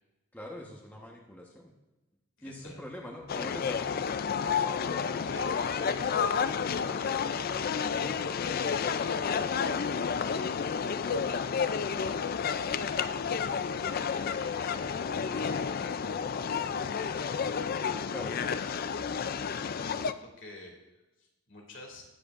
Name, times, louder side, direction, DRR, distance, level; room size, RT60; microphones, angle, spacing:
voice 1, 0.3-1.7 2.4-4.2 18.1-18.4, left 1 dB, 10° left, -2 dB, 1.1 m, -43 dB
voice 2, 2.4-2.9 5.3-7.3 7.6-10.5 11.0-13.1 13.8-16.0 16.6-17.4 19.7-20.7 21.2-22.0, left 2 dB, 65° left, 1 dB, 2.4 m, -49 dB
sound 1, 3.3-20.1, left 6 dB, 50° left, 0.4 m, -31 dB
19.0 x 7.7 x 2.5 m, 1.1 s
head